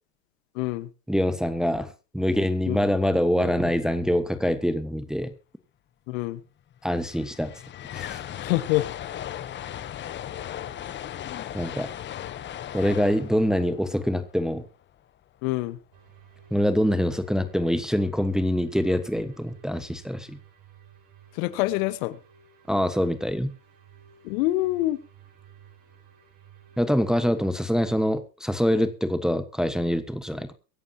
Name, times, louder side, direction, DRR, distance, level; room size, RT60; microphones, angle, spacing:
voice 1, 0.5-0.9 2.7-2.8 6.1-6.4 8.4-8.8 15.4-15.8 21.4-22.2 24.2-25.0, left 18 dB, 50° left, 15 dB, 1.4 m, -25 dB
voice 2, 1.1-5.3 6.8-7.5 7.9-8.2 11.5-11.9 12.7-14.6 16.5-20.4 22.7-23.5 26.8-30.5, equal, ahead, 10 dB, 1.3 m, -25 dB
sound 1, 6.4-6.5 6.7-14.9, left 11 dB, 20° left, 0.9 m, -37 dB
sound 2, 15.9-27.5, right 7 dB, 45° right, 6.1 m, -54 dB
23.5 x 11.0 x 2.9 m, 0.31 s
hypercardioid pair, 110°, 50 cm